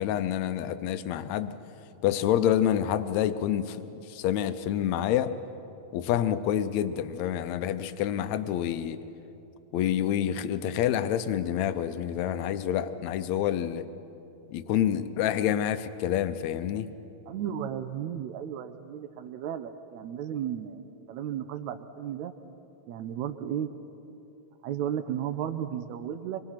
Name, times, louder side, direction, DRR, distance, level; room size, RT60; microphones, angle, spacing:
voice 1, 0.0-1.5 2.0-5.3 5.9-9.0 9.7-13.9 14.5-16.9, left 10 dB, 75° left, 11 dB, 2.0 m, -27 dB
voice 2, 17.3-22.3 22.9-23.7 24.6-26.4, right 9 dB, 80° right, 7 dB, 2.0 m, -34 dB
25.5 x 22.5 x 5.8 m, 2.9 s
omnidirectional pair, 3.4 m